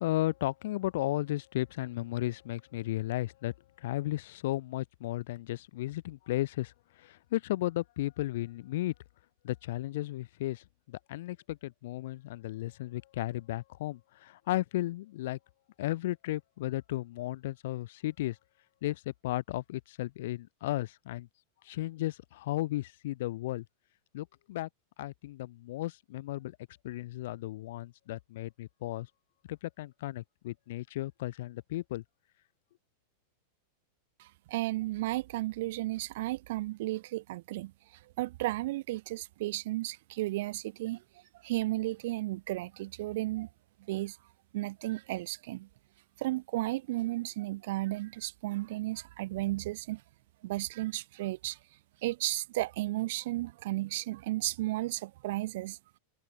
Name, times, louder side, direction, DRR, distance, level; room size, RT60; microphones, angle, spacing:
voice 1, 0.0-8.9 9.4-15.4 15.8-18.4 18.8-21.3 21.6-23.7 24.1-24.7 25.0-26.6 26.8-29.1 29.5-32.0, left 16 dB, 55° left, 3.9 m, -34 dB
voice 2, 34.2-37.7 38.2-41.0 41.4-43.5 43.9-44.2 44.5-45.7 46.2-50.0 50.4-51.6 52.0-55.8, right 18 dB, 55° right, 1.4 m, -34 dB
figure-of-eight pair, 90°, 0 cm